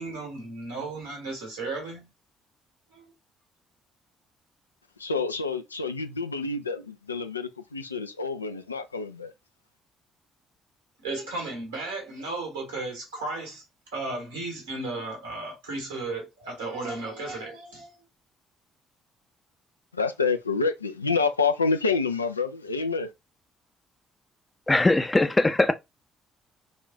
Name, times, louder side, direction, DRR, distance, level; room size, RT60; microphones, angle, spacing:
voice 1, 0.0-2.1 2.9-3.1 11.0-13.6 13.9-18.0, right 2 dB, 80° right, 1.6 m, -34 dB
voice 2, 5.0-9.3 19.9-23.1, left 4 dB, 85° left, 0.3 m, -28 dB
voice 3, 24.7-25.7, left 2 dB, 20° left, 0.5 m, -21 dB
4.0 x 2.4 x 2.6 m
figure-of-eight pair, 45°, 0 cm